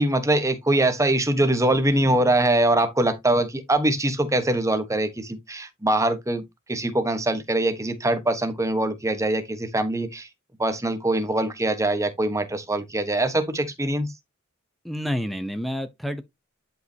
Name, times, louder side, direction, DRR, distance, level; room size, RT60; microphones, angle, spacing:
voice 1, 0.0-6.4 6.7-10.3 10.6-14.1, right 1 dB, 15° right, 1.2 m, -23 dB
voice 2, 14.8-16.2, equal, ahead, 0.8 m, -29 dB
11.0 x 5.3 x 2.8 m
head